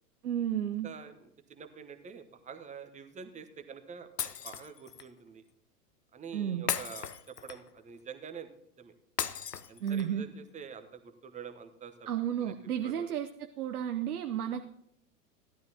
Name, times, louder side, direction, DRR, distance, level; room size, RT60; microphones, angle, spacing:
voice 1, 0.2-0.9 6.3-6.6 9.8-10.3 12.1-13.3 13.6-14.7, right 9 dB, 70° right, 7 dB, 0.8 m, -32 dB
voice 2, 0.8-5.4 6.1-8.5 8.8-8.9 9.7-12.1 12.4-13.1 14.3-14.5, right 6 dB, 15° right, 8 dB, 1.0 m, -47 dB
Shatter, 4.2-5.1 6.7-7.8 9.2-10.2, left 8 dB, 80° left, 0.8 m, -36 dB
16.5 x 12.0 x 2.9 m, 0.77 s
figure-of-eight pair, 90°, 47 cm